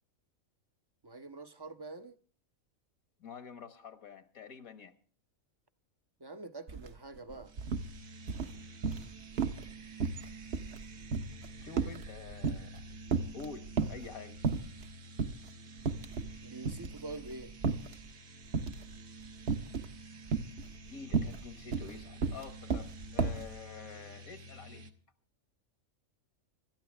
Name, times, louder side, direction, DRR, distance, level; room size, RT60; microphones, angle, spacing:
voice 1, 1.0-2.2 6.2-7.5 16.4-17.5, right 3 dB, 30° right, 0.5 m, -45 dB
voice 2, 3.2-4.9 11.6-12.9 13.3-14.4 20.9-24.9, left 6 dB, 80° left, 1.7 m, -48 dB
sound 1, 6.7-6.9 7.2-7.9 8.3-9.1 9.4-9.7 10.0-12.8 13.1-14.1 14.4-14.9 15.2-15.4 15.8-16.4 16.6-18.0 18.5-18.9 19.5-19.9 20.3-23.5, right 5 dB, 55° right, 1.0 m, -33 dB
sound 2, 7.5-24.9, right 2 dB, 75° right, 1.6 m, -50 dB
25.5 x 12.5 x 3.4 m
omnidirectional pair, 1.5 m